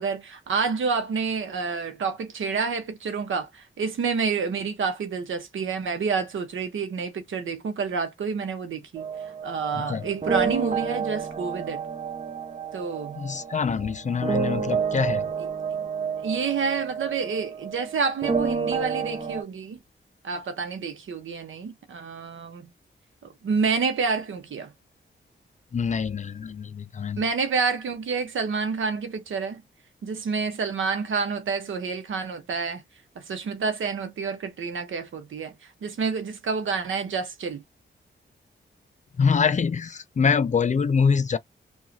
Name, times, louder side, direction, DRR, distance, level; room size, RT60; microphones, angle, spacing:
voice 1, 0.0-9.1 9.4-11.8 12.7-13.2 15.4-15.5 16.2-19.8 20.2-22.7 23.4-24.7 27.2-29.6 30.0-32.8 33.2-35.5 35.8-37.6, right 5 dB, 85° right, 0.9 m, -28 dB
sound 1, 9.0-19.4, right 6 dB, 35° right, 0.7 m, -30 dB
voice 2, 13.2-15.3 25.7-27.2 39.2-41.4, left 6 dB, 40° left, 0.4 m, -24 dB
2.9 x 2.4 x 2.6 m
cardioid pair, 85°, 20 cm